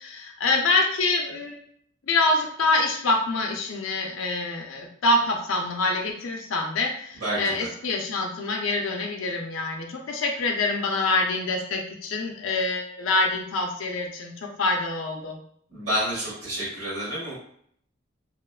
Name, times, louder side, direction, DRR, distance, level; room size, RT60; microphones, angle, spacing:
voice 1, 0.0-1.6 2.0-15.4, left 2 dB, 90° left, 1 dB, 0.5 m, -26 dB
voice 2, 7.2-7.7 15.7-17.3, equal, 90° right, -9 dB, 1.2 m, -29 dB
2.9 x 2.1 x 2.3 m, 0.65 s
head